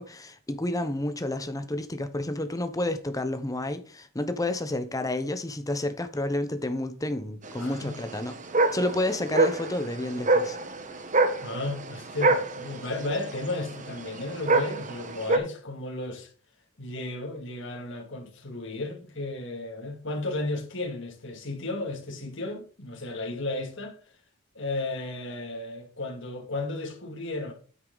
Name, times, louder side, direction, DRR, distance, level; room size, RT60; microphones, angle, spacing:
voice 1, 0.0-8.3 8.7-10.6, left 1 dB, 15° left, 0.9 m, -30 dB
sound 1, 7.4-15.4, right 3 dB, 35° right, 1.1 m, -26 dB
voice 2, 7.6-7.9 11.4-16.3 16.8-24.0 24.5-27.5, left 2 dB, 60° left, 2.6 m, -34 dB
9.4 x 8.1 x 4.0 m
head